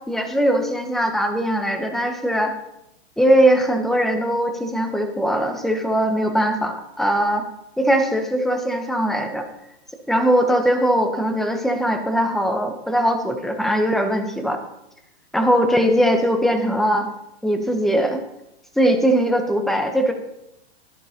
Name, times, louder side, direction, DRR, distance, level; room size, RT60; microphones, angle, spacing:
voice 1, 0.1-2.5 3.2-7.4 7.8-9.5 10.1-14.6 15.3-17.1 17.4-18.2 18.8-20.1, equal, ahead, 5 dB, 0.7 m, -20 dB
12.0 x 11.0 x 2.8 m, 0.84 s
hypercardioid pair, 135°, 33 cm